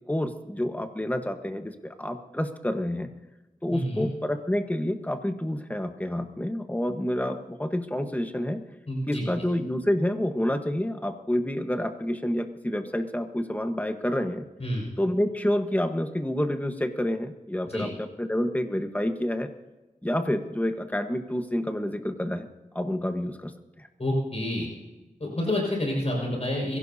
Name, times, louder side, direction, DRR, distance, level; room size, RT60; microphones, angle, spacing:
voice 1, 0.1-3.1 3.6-8.6 9.1-14.4 15.0-19.5 20.0-22.5 22.7-23.5, left 1 dB, 10° left, 6 dB, 1.3 m, -28 dB
voice 2, 3.7-4.1 8.9-9.2 14.6-14.9 17.7-17.9 24.0-24.7 25.2-26.8, left 1 dB, 50° left, -3 dB, 5.6 m, -28 dB
23.0 x 16.5 x 2.8 m, 1.1 s
wide cardioid pair, 75°, 14 cm